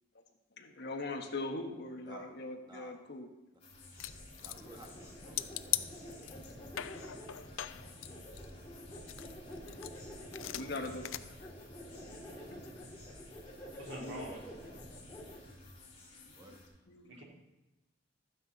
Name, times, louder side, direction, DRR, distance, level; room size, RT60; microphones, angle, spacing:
voice 1, 0.6-3.3 7.7-8.2 10.5-11.1 12.1-12.2 14.0-14.2 16.9-17.1, left 2 dB, 60° left, 3 dB, 1.3 m, -41 dB
sound 1, 3.6-16.7, left 3 dB, 30° left, 3.2 m, -56 dB
sound 2, 4.0-5.0 5.4-6.5 6.8-8.7 9.1-11.2, left 13 dB, 85° left, 0.4 m, -40 dB
sound 3, 4.0-15.6, equal, 15° left, 2.7 m, -49 dB
voice 2, 4.4-5.7 8.7-8.9 10.3-10.9 12.9-13.2 15.2-15.5 16.0-16.6 16.9-17.1, right 1 dB, 20° right, 2 dB, 1.4 m, -55 dB
voice 3, 13.8-14.4 17.1-17.2, right 1 dB, 65° right, -2 dB, 2.6 m, -44 dB
12.5 x 9.2 x 4.0 m, 1.0 s
head